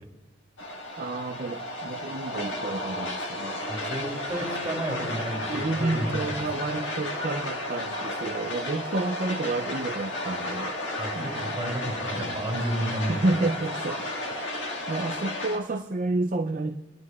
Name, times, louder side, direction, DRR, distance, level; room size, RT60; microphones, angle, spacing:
sound 1, 0.6-15.6, left 1 dB, 65° left, 1.7 m, -33 dB
voice 1, 1.0-3.7 5.5-10.8 11.1-11.6 13.1-14.1 14.6-16.8, right 2 dB, 40° right, 4 dB, 0.5 m, -30 dB
voice 2, 3.7-6.5 11.0-13.2, right 1 dB, 15° right, -3 dB, 3.2 m, -32 dB
24.0 x 11.0 x 2.4 m, 1.2 s
head